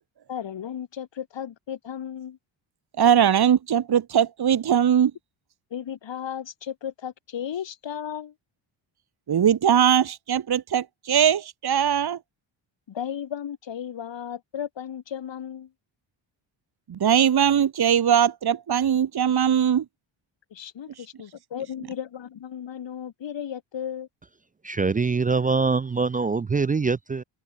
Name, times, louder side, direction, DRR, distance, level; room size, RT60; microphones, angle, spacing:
voice 1, 0.3-2.4 5.7-8.3 12.9-15.7 20.5-24.1, left 9 dB, 60° left, 5.4 m, -35 dB
voice 2, 3.0-5.1 9.3-12.2 16.9-19.8, right 9 dB, 50° right, 2.1 m, -20 dB
voice 3, 24.7-27.2, right 4 dB, 20° right, 0.4 m, -23 dB
cardioid pair, 95°, 49 cm